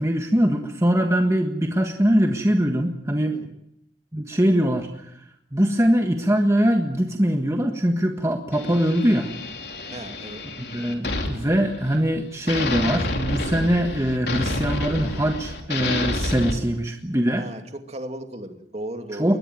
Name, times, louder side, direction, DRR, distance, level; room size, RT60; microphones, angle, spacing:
voice 1, 0.0-3.4 4.1-4.9 5.5-9.3 10.7-17.4 19.2-19.4, equal, 15° right, 4 dB, 1.5 m, -22 dB
sound 1, 8.5-12.1 12.5-16.5, left 2 dB, 65° left, 4.0 m, -29 dB
voice 2, 9.9-10.5 17.3-19.4, right 1 dB, 40° right, 6 dB, 2.4 m, -35 dB
21.5 x 20.5 x 9.2 m, 0.78 s
head